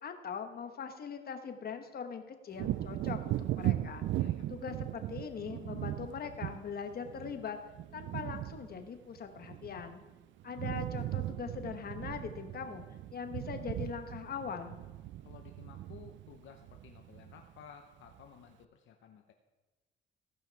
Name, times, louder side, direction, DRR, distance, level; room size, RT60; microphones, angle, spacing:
voice 1, 0.0-4.0 4.5-7.6 7.9-10.0 10.4-12.8 13.1-14.8, left 6 dB, 50° left, 7 dB, 1.2 m, -41 dB
Wind / Thunder, 2.5-10.1 10.4-17.6 18.1-18.2, right 14 dB, 70° right, 0.4 m, -38 dB
voice 2, 4.2-4.5 15.2-19.3, left 7 dB, 75° left, 4 dB, 0.8 m, -55 dB
15.0 x 5.6 x 4.7 m, 1.2 s
cardioid pair, 90°, 20 cm